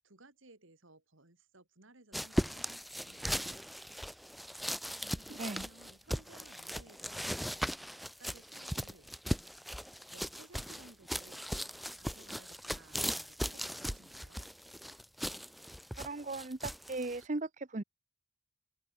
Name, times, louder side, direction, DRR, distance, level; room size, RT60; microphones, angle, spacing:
voice 1, 0.0-3.6 5.2-7.6 8.0-9.1 10.1-11.5 11.9-14.5, right 2 dB, 75° right, 2.9 m, -59 dB
sound 1, 2.1-17.2, equal, ahead, 0.6 m, -38 dB
voice 2, 5.0-5.7 16.0-17.8, right 2 dB, 35° right, 0.8 m, -38 dB
open air
head